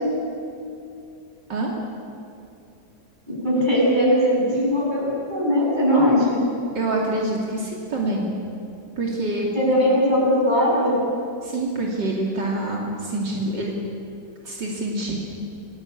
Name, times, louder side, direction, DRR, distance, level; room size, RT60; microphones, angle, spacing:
voice 1, 3.4-6.3 9.5-11.0, equal, 25° right, -5 dB, 8.3 m, -19 dB
voice 2, 6.7-8.3 9.0-9.5 11.4-13.7 14.4-15.2, right 2 dB, 80° right, -2 dB, 3.4 m, -26 dB
26.5 x 19.0 x 8.7 m, 2.6 s
omnidirectional pair, 1.9 m